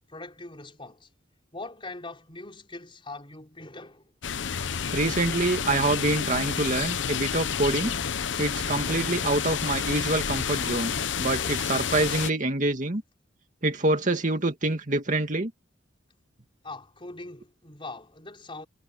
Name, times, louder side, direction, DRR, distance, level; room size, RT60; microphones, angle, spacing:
voice 1, 0.1-1.1 1.5-4.0 16.6-18.7, left 2 dB, 25° left, 4.6 m, -41 dB
sound 1, 4.2-12.3, left 7 dB, 70° left, 0.8 m, -29 dB
voice 2, 4.9-7.9 8.4-13.0 13.6-15.5, right 2 dB, 40° right, 2.2 m, -26 dB
head